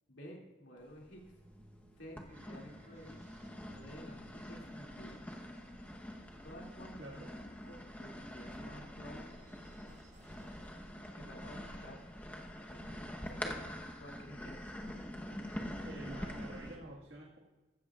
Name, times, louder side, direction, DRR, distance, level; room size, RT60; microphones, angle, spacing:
voice 1, 0.1-1.2 2.0-3.3 3.7-5.2 6.4-7.3 7.6-9.3 11.2-12.0 12.7-13.6 14.0-14.7, equal, 90° left, -1 dB, 2.4 m, -52 dB
sound 1, 0.9-1.6 2.2-16.8, equal, 10° left, 0.9 m, -45 dB
sound 2, 0.9-11.4, right 1 dB, 40° right, 1.1 m, -63 dB
sound 3, 1.4-13.5, right 1 dB, 20° right, 0.7 m, -64 dB
voice 2, 7.0-7.3 15.9-17.4, right 1 dB, 85° right, -3 dB, 1.7 m, -48 dB
15.0 x 13.0 x 2.4 m, 1.1 s
head